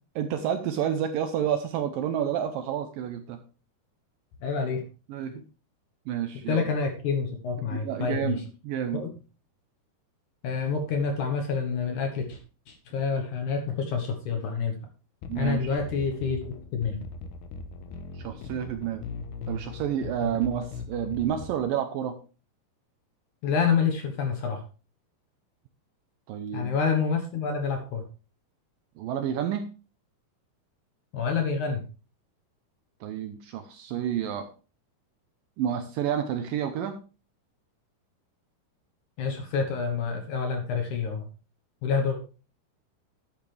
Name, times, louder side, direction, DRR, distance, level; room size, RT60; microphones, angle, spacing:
voice 1, 0.2-3.4 5.1-5.4 6.1-6.6 7.7-9.1 15.3-15.8 18.1-19.0 19.5-22.2 26.3-26.7 29.0-29.7 33.0-34.5 35.6-37.0, right 9 dB, 75° right, 8 dB, 2.2 m, -29 dB
voice 2, 4.4-4.8 6.5-8.4 8.9-9.1 10.4-12.4 12.7-14.8 15.4-17.0 23.4-24.6 26.5-28.0 31.1-31.8 39.2-41.3 41.8-42.2, left 5 dB, 65° left, 5 dB, 2.2 m, -28 dB
sound 1, 15.2-21.6, left 4 dB, 80° left, 3.0 m, -39 dB
11.5 x 8.7 x 3.3 m, 0.34 s
omnidirectional pair, 4.7 m